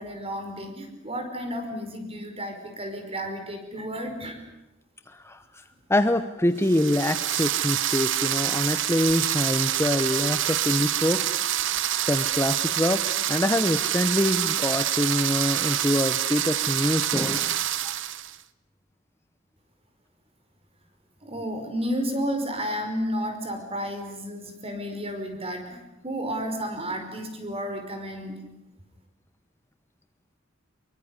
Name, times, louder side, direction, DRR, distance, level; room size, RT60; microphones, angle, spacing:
voice 1, 0.0-4.4 21.2-28.4, equal, 30° right, 6 dB, 5.1 m, -32 dB
voice 2, 5.1-5.6 5.9-11.2 12.1-13.0 13.3-17.5 17.8-17.9, left 1 dB, 15° left, 10 dB, 0.9 m, -25 dB
sound 1, 6.6-18.4, right 12 dB, 65° right, 1.0 m, -26 dB
24.5 x 22.5 x 9.7 m, 0.96 s
head